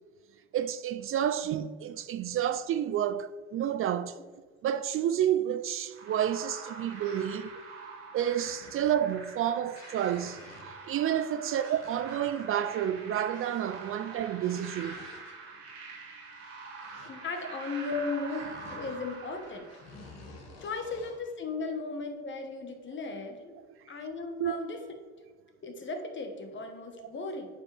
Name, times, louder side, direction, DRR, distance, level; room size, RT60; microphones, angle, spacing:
voice 1, 0.5-4.2 4.6-7.5 8.1-10.4 10.9-15.0 24.4-24.6, right 10 dB, 45° right, 0.4 m, -30 dB
sound 1, 5.9-20.3, right 4 dB, 75° right, 2.2 m, -45 dB
sound 2, 8.3-9.1 9.4-10.9 11.6-12.4 13.3-13.8 14.3-15.5 16.8-17.8 18.3-21.4, left 3 dB, 55° left, 1.7 m, -52 dB
voice 2, 17.0-18.4 18.7-19.7 20.6-23.6 23.9-24.8 25.6-27.5, left 4 dB, 40° left, 1.4 m, -36 dB
8.5 x 4.9 x 3.4 m
supercardioid pair, 80°, 31 cm